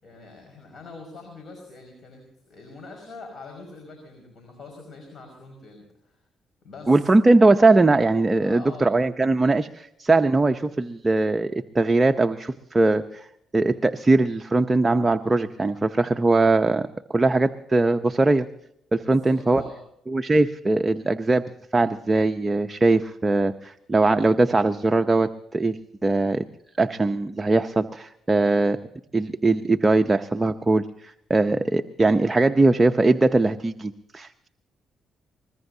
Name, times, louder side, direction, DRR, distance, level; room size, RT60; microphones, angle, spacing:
voice 1, 0.0-6.2 6.6-7.0 8.4-8.9 18.9-19.8, left 3 dB, 50° left, 3 dB, 5.5 m, -44 dB
voice 2, 6.9-13.3 13.5-18.5 18.9-19.6 20.1-21.4 21.7-26.5 26.8-28.8 29.1-34.5, right 2 dB, 20° right, 7 dB, 0.7 m, -21 dB
22.5 x 20.5 x 2.8 m, 0.76 s
cardioid pair, 90°, 0 cm